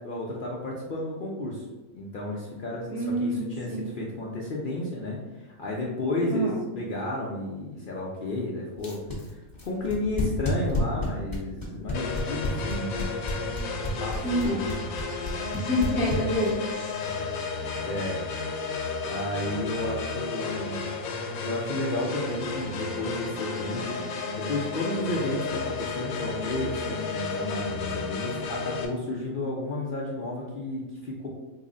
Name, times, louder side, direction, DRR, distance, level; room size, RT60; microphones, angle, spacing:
voice 1, 0.0-1.6 1.9-13.5 14.0-14.6 17.8-18.2 18.6-18.7 19.1-20.9 21.4-31.3, left 1 dB, 65° left, -3 dB, 0.5 m, -32 dB
voice 2, 2.9-3.9 6.3-6.6 14.2-14.7 15.5-17.0, equal, 10° right, -6 dB, 0.4 m, -28 dB
sound 1, 8.8-16.7, left 2 dB, 20° left, 0.7 m, -31 dB
sound 2, 11.9-28.9, left 4 dB, 85° left, 1.1 m, -33 dB
3.9 x 2.0 x 3.7 m, 1.1 s
omnidirectional pair, 1.5 m